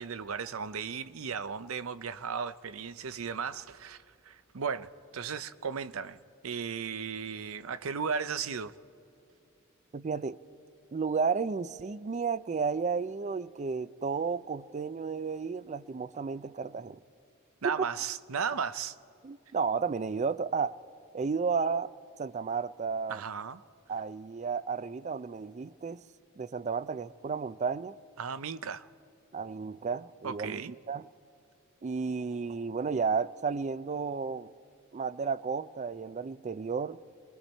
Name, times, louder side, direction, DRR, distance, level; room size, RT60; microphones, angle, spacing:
voice 1, 0.0-8.7 17.6-19.0 23.1-23.6 28.2-28.9 30.2-30.7, right 6 dB, 80° right, 0.6 m, -35 dB
voice 2, 9.9-10.4 10.9-17.0 17.6-17.9 19.2-20.7 21.1-21.9 22.2-23.2 23.9-26.0 26.4-28.0 29.3-30.6 30.9-31.1 31.8-34.5 34.9-37.0, right 5 dB, 35° right, 0.4 m, -32 dB
28.0 x 22.0 x 4.4 m
head